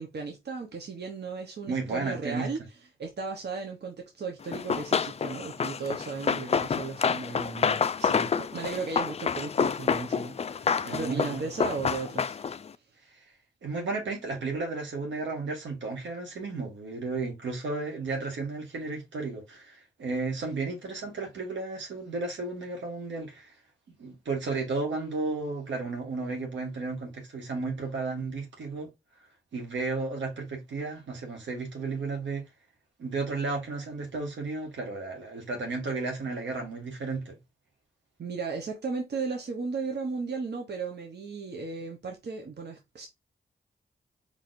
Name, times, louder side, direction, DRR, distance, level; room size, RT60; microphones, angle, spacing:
voice 1, 0.0-2.6 3.0-12.4 38.2-43.1, right 4 dB, 60° right, 1.0 m, -35 dB
voice 2, 1.7-2.5 10.8-11.4 13.6-23.5 24.0-28.9 29.5-32.4 33.0-37.4, right 3 dB, 85° right, 1.6 m, -33 dB
Run, 4.5-12.7, left 6 dB, 35° left, 0.4 m, -28 dB
4.3 x 3.4 x 2.5 m
cardioid pair, 50°, 19 cm